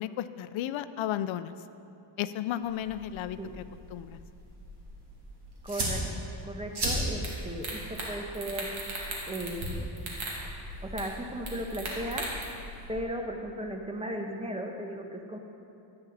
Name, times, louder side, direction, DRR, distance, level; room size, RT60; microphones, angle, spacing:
voice 1, 0.0-1.5 2.2-3.6 3.9-4.2, left 11 dB, 75° left, 13 dB, 0.6 m, -33 dB
sound 1, 2.6-12.9, right 1 dB, 55° right, 2.9 m, -38 dB
voice 2, 5.6-6.0 6.4-8.8 9.3-9.9 10.8-12.3 12.9-15.4, right 1 dB, 10° right, 3 dB, 1.2 m, -36 dB
sound 2, 7.2-7.3 7.6-8.1 8.3-9.7 10.0-10.4 11.0-11.1 11.5-12.4, right 3 dB, 85° right, 2.5 m, -37 dB
14.0 x 9.7 x 4.1 m, 2.7 s
cardioid pair, 105°, 47 cm